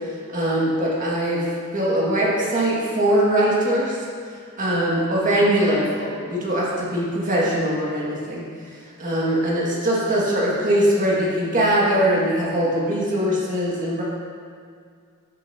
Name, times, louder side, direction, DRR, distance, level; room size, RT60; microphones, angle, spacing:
voice 1, 0.3-1.4 1.7-4.0 4.6-8.4 9.0-14.0, right 1 dB, 35° right, -6 dB, 2.0 m, -21 dB
12.0 x 7.0 x 2.8 m, 2.2 s
head